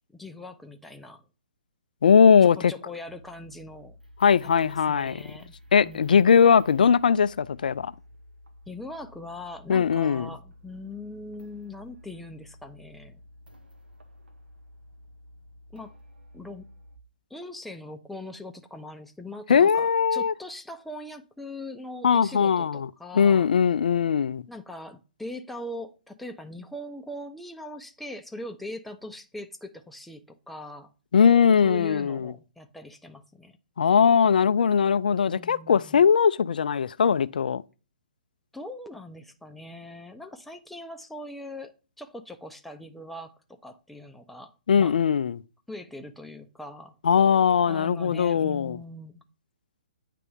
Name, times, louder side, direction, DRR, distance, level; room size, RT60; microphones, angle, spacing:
voice 1, 0.1-1.2 2.4-4.0 4.6-5.5 5.8-6.2 8.7-13.2 15.7-15.9 16.3-16.7 17.3-23.5 24.5-30.9 31.6-33.6 35.2-36.1 38.5-41.7 42.0-45.0 45.7-47.0 47.7-49.2, left 1 dB, ahead, 0.5 m, -41 dB
voice 2, 2.0-2.7 4.2-5.2 5.7-7.9 9.7-10.3 19.5-20.3 22.0-22.9 23.1-24.4 31.1-32.3 33.8-37.6 44.7-45.4 47.0-48.8, left 7 dB, 60° left, 0.4 m, -20 dB
sound 1, 3.0-17.0, left 1 dB, 75° right, 1.1 m, -52 dB
9.1 x 3.3 x 3.6 m
figure-of-eight pair, 130°, 5 cm